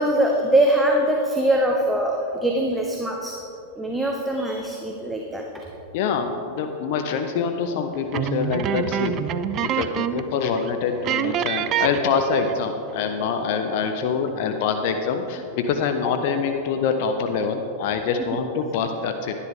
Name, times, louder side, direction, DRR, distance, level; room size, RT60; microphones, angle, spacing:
voice 1, 0.0-3.4 3.8-5.6 18.2-18.4, right 1 dB, 5° right, 1 dB, 1.0 m, -22 dB
voice 2, 5.9-9.1 9.6-19.3, left 6 dB, 60° left, 5 dB, 0.7 m, -25 dB
sound 1, 8.1-10.3 10.6-10.7 11.0-12.7, right 9 dB, 40° right, 0.5 m, -26 dB
11.5 x 11.0 x 3.6 m, 2.8 s
hypercardioid pair, 100°, 0 cm